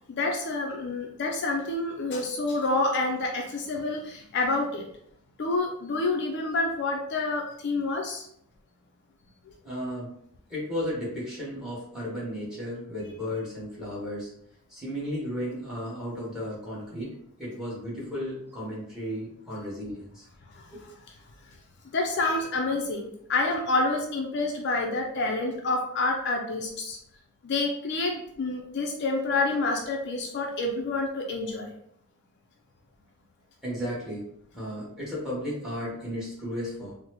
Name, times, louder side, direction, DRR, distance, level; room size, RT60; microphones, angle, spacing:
voice 1, 0.1-4.8 5.4-8.3 20.6-20.7 21.9-27.0 27.4-31.7, left 2 dB, 55° left, 1 dB, 0.4 m, -28 dB
voice 2, 9.6-10.1 10.5-14.3 14.7-20.3 20.7-20.8 33.6-36.9, equal, 5° right, -6 dB, 1.2 m, -34 dB
3.9 x 2.1 x 2.9 m, 0.72 s
head